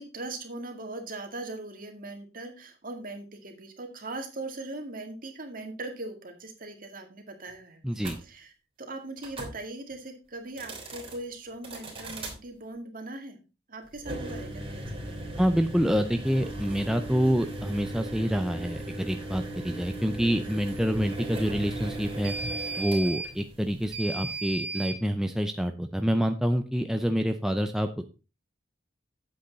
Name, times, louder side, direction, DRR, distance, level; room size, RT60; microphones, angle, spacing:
voice 1, 0.0-7.8 8.2-8.5 8.8-13.4 13.7-15.2, right 2 dB, 50° right, 4 dB, 2.0 m, -40 dB
voice 2, 7.8-8.2 15.4-22.3 22.8-28.1, equal, 5° right, 6 dB, 0.5 m, -27 dB
sound 1, 8.0-8.2 9.2-9.6 10.5-11.2 11.6-12.4 14.0-25.0, right 2 dB, 30° right, 3.1 m, -36 dB
8.5 x 7.9 x 3.9 m, 0.31 s
head